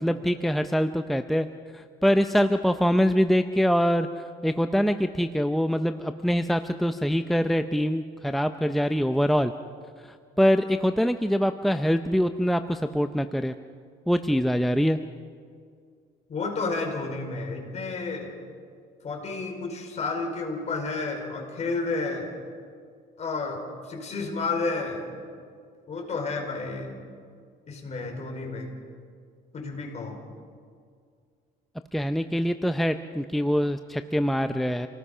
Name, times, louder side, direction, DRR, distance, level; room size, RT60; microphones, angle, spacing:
voice 1, 0.0-1.5 1.7-4.1 4.4-9.5 10.4-13.5 14.1-15.0 31.9-34.9, equal, ahead, 8 dB, 0.6 m, -24 dB
voice 2, 16.3-18.3 19.0-22.4 23.2-25.2 25.9-27.0 27.7-28.7 29.5-30.2, left 3 dB, 40° left, 2 dB, 4.9 m, -31 dB
28.5 x 18.5 x 5.7 m, 2.1 s
cardioid pair, 110°, 17 cm